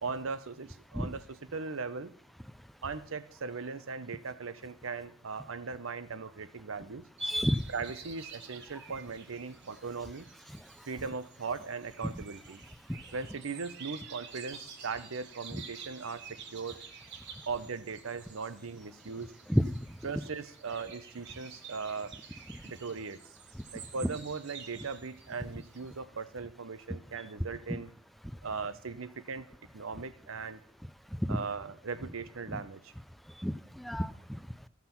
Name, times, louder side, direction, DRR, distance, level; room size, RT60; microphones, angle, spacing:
voice 1, 0.0-2.1 2.8-7.0 7.7-10.3 10.9-12.6 13.1-16.8 17.5-19.3 20.0-22.1 22.6-23.2 23.7-27.9 28.4-29.5 29.7-30.6 31.3-32.9, right 4 dB, 85° right, 13 dB, 0.8 m, -39 dB
voice 2, 7.2-7.6 12.2-12.3 15.5-15.6 19.5-19.7 27.7-27.8 31.3-31.4 32.5-32.6 33.4-34.4, equal, ahead, 14 dB, 0.4 m, -30 dB
sound 1, 7.2-26.0, right 7 dB, 60° right, 1.4 m, -51 dB
14.5 x 5.9 x 5.8 m, 0.64 s
head